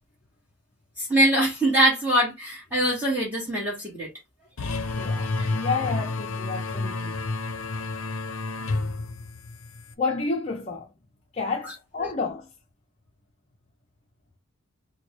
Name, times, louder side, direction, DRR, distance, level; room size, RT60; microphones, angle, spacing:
voice 1, 1.0-4.1 4.6-4.8 5.2-5.5 12.0-12.1, right 1 dB, 10° right, 1.2 m, -23 dB
sound 1, 4.6-9.9, left 3 dB, 80° left, 0.5 m, -30 dB
voice 2, 5.0-7.1 10.0-10.9 11.3-12.5, left 4 dB, 30° left, 0.5 m, -30 dB
3.1 x 2.2 x 4.0 m
head